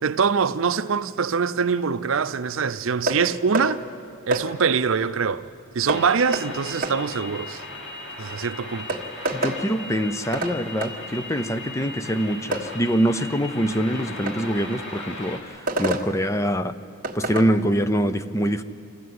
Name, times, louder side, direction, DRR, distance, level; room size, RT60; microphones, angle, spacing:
voice 1, 0.0-3.8 4.3-5.5 5.7-7.6 8.2-9.0, right 6 dB, 65° right, 0.5 m, -23 dB
sound 1, 3.1-3.2 3.5-3.7 4.3-4.5 5.9-6.0 6.3-6.5 6.8-7.0 8.3-8.4 8.9-9.6 10.3-10.5 10.8-10.9 12.5-12.7 14.3-14.4 15.7-16.1 17.0-17.5, right 2 dB, 40° right, 1.5 m, -26 dB
sound 2, 5.9-15.4, left 2 dB, 55° left, 3.3 m, -37 dB
voice 2, 9.3-16.8 17.1-18.6, equal, 15° left, 0.6 m, -24 dB
26.5 x 14.0 x 9.5 m
head